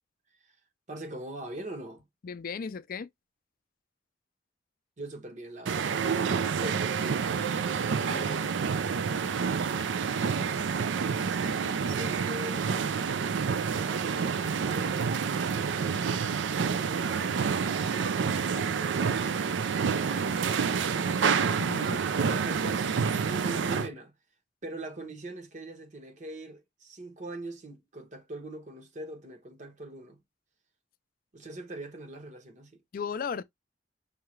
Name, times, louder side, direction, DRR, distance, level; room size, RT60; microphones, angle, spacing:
voice 1, 0.9-2.0 5.0-6.0 6.4-7.2 7.7-9.1 11.3-12.7 13.6-16.2 16.7-19.1 22.1-24.1 24.6-30.2 31.3-32.8, right 2 dB, 45° right, 1.1 m, -42 dB
voice 2, 2.2-3.1 21.6-22.0 32.9-33.4, left 6 dB, 50° left, 0.4 m, -35 dB
sound 1, 5.7-23.9, right 6 dB, 75° right, 0.4 m, -28 dB
5.6 x 2.4 x 3.1 m
head